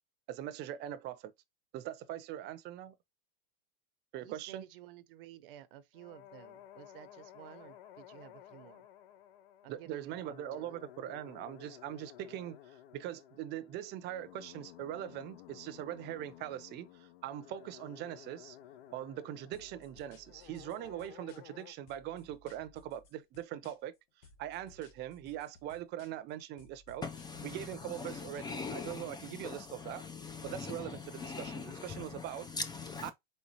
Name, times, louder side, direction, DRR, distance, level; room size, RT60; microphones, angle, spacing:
voice 1, 0.3-1.3 1.7-3.0 4.1-4.7 9.7-18.6 18.9-23.9 24.4-27.0 27.4-30.0 30.4-32.5 33.0-33.1, right 12 dB, 35° right, 0.7 m, -42 dB
voice 2, 4.2-8.8 9.6-10.3, right 12 dB, 70° right, 0.8 m, -53 dB
sound 1, 5.9-21.7, left 11 dB, 75° left, 0.8 m, -55 dB
sound 2, 19.5-21.6 21.9-24.0 24.2-26.3 26.6-28.9, left 3 dB, 50° left, 1.4 m, -60 dB
voice 3, 27.0-33.1, left 5 dB, 15° left, 0.3 m, -42 dB
4.4 x 3.4 x 2.8 m
supercardioid pair, 130°, 29 cm